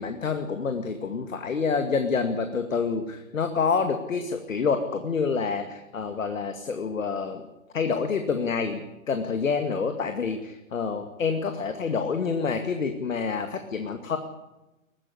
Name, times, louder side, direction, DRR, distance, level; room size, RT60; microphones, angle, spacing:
voice 1, 0.0-7.5 7.7-14.2, left 5 dB, 70° left, 7 dB, 2.3 m, -27 dB
22.0 x 15.5 x 9.8 m, 0.99 s
figure-of-eight pair, 115°, 41 cm